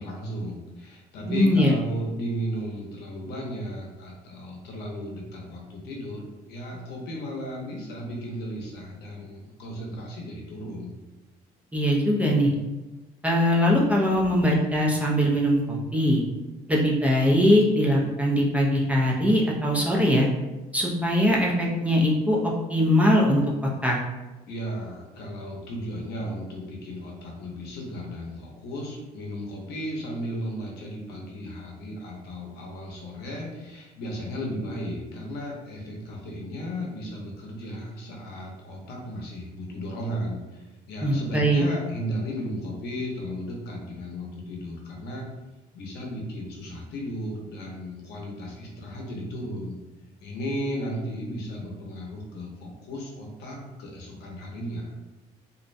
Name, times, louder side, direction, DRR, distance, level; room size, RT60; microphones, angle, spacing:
voice 1, 0.0-11.0 24.5-45.3 45.7-49.8 50.2-55.0, equal, 75° left, -1 dB, 0.7 m, -35 dB
voice 2, 1.3-1.7 11.7-12.5 13.2-16.2 16.7-20.3 20.7-23.4 23.8-24.0 41.0-41.6, equal, 10° right, -3 dB, 0.4 m, -21 dB
2.5 x 2.0 x 2.5 m, 1.1 s
cardioid pair, 110°, 17 cm